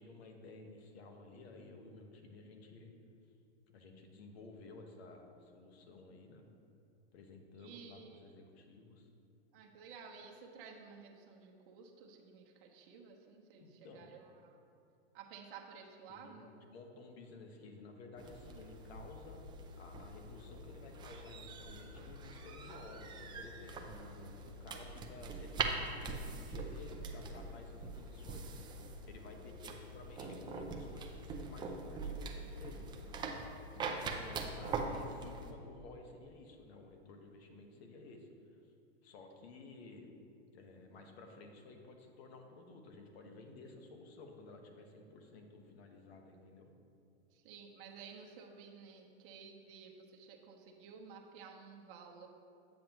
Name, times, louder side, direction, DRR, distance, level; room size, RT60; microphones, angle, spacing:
voice 1, 0.0-2.9 3.7-6.5 7.1-9.1 13.6-14.1 16.1-19.4 19.7-23.9 24.4-28.5 29.0-33.2 34.0-38.3 39.0-40.1 40.5-46.7, left 3 dB, 70° left, 4 dB, 1.3 m, -54 dB
voice 2, 7.6-8.3 9.5-14.5 15.1-16.5 33.7-35.0 47.3-52.3, right 6 dB, 55° right, 1 dB, 1.1 m, -54 dB
sound 1, 18.2-35.5, right 3 dB, 15° right, 0.5 m, -43 dB
8.9 x 7.6 x 3.0 m, 2.6 s
hypercardioid pair, 135°, 33 cm